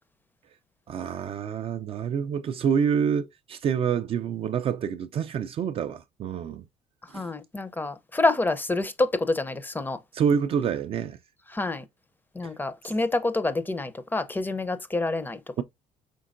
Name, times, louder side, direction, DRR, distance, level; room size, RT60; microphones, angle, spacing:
voice 1, 0.9-6.6 7.1-7.3 10.1-11.2, right 7 dB, 40° right, 0.4 m, -27 dB
voice 2, 7.1-10.0 11.5-11.9 12.3-15.6, left 2 dB, 15° left, 0.5 m, -27 dB
5.2 x 3.6 x 2.4 m
cardioid pair, 130°, 14 cm